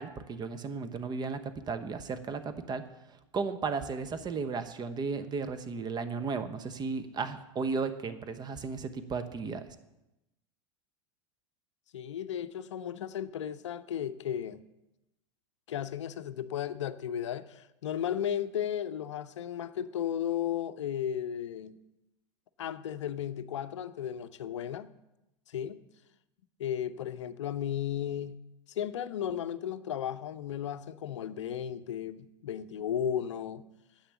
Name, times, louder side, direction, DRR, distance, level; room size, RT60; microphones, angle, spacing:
voice 1, 0.0-2.8 3.3-9.6, right 4 dB, 25° right, 10 dB, 1.0 m, -34 dB
voice 2, 11.9-14.6 15.7-21.8 22.6-24.9 25.5-25.8 26.6-28.4 28.7-33.7, left 9 dB, 70° left, 13 dB, 0.6 m, -35 dB
10.0 x 8.0 x 7.0 m, 0.94 s
figure-of-eight pair, 85°, 16 cm